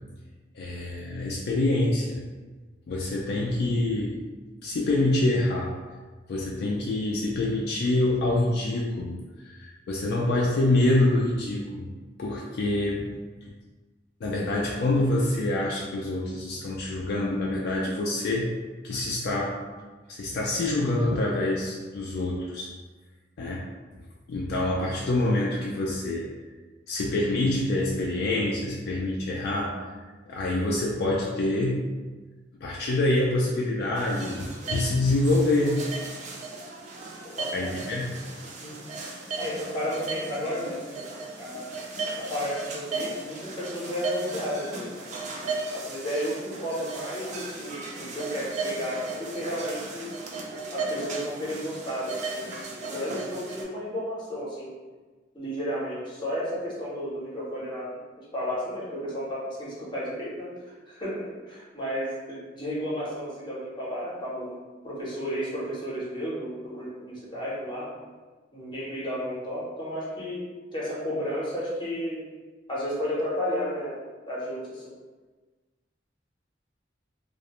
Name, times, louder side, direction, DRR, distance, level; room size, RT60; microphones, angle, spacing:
voice 1, 0.6-2.2 2.9-4.2 4.6-5.7 6.3-11.9 12.2-13.1 14.2-18.5 18.8-19.6 20.1-22.7 23.4-23.7 24.3-26.3 26.9-29.9 30.3-31.8 32.6-35.8 37.5-38.1, left 2 dB, 60° left, -3 dB, 0.3 m, -26 dB
sound 1, 34.0-53.6, right 3 dB, 40° right, 0.4 m, -36 dB
voice 2, 37.4-37.7 38.6-38.8 39.4-41.1 41.4-41.8 42.2-45.1 45.7-50.1 50.7-52.5 52.8-54.7 55.3-64.6 64.8-67.9 68.5-72.3 72.7-74.0 74.3-74.9, equal, 25° left, -6 dB, 0.7 m, -33 dB
2.4 x 2.0 x 2.8 m, 1.3 s
head